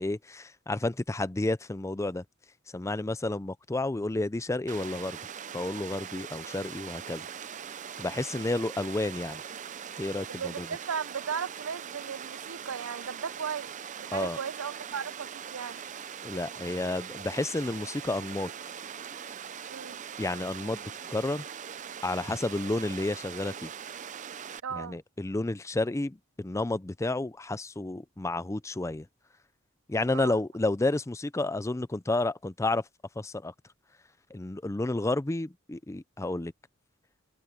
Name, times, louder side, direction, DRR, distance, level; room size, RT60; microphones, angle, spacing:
voice 1, 0.0-2.2 2.7-5.2 5.5-7.3 8.0-9.4 10.0-10.7 14.1-14.4 16.2-18.5 20.2-21.4 22.0-23.7 24.7-29.1 29.9-32.9 33.2-33.5 34.3-36.5, left 2 dB, 15° left, 0.5 m, -31 dB
Water, 4.7-24.6, right 8 dB, 35° right, 0.5 m, -41 dB
voice 2, 10.3-15.8 19.7-20.0 24.6-25.0 30.1-30.4, right 6 dB, 80° right, 0.6 m, -36 dB
head